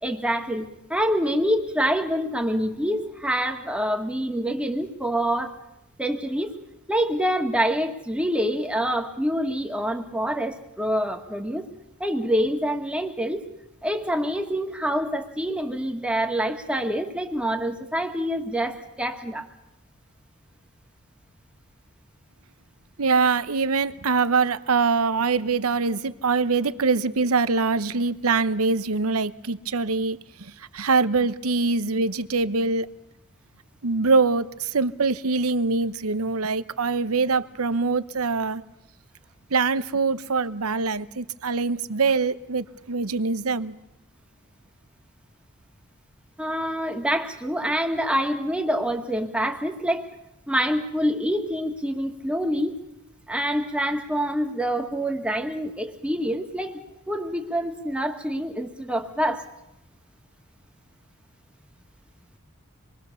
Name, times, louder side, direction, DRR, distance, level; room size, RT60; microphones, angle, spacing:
voice 1, 0.0-5.5 6.0-6.5 6.9-11.7 12.0-13.5 13.8-19.5 46.4-50.1 50.5-52.8 53.3-56.8 57.1-59.4, equal, 5° right, 2.0 m, -26 dB
voice 2, 23.0-32.9 33.8-38.6 39.5-43.7, right 4 dB, 80° right, 0.9 m, -24 dB
27.0 x 22.0 x 7.0 m
head